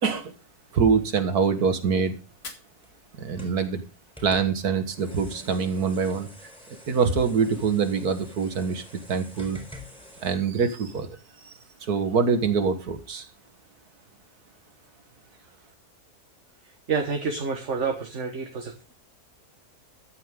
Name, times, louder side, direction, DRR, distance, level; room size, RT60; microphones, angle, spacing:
voice 1, 0.0-0.3 0.7-2.2 3.2-3.8 4.2-6.3 6.9-8.8 9.1-9.6 10.2-11.1 11.4-11.5 11.8-13.3, right 5 dB, 85° right, 9 dB, 2.0 m, -24 dB
sound 1, 0.8-10.4, left 1 dB, 5° left, 4.0 m, -48 dB
Fire, 2.3-4.3, left 3 dB, 60° left, 2.5 m, -48 dB
voice 2, 16.9-18.9, right 5 dB, 50° right, 4 dB, 1.8 m, -28 dB
14.0 x 9.1 x 3.7 m, 0.34 s
omnidirectional pair, 1.6 m